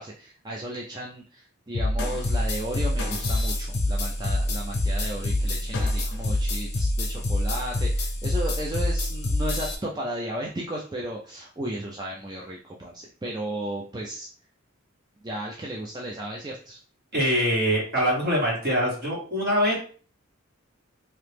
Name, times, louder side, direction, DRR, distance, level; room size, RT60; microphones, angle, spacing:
voice 1, 0.0-14.3 15.2-16.8, right 1 dB, 20° right, -3 dB, 0.4 m, -34 dB
sound 1, 1.7-9.8, left 1 dB, 55° left, 0.7 m, -26 dB
voice 2, 17.1-19.8, equal, 50° right, -4 dB, 1.7 m, -23 dB
3.0 x 2.8 x 3.3 m, 0.41 s
head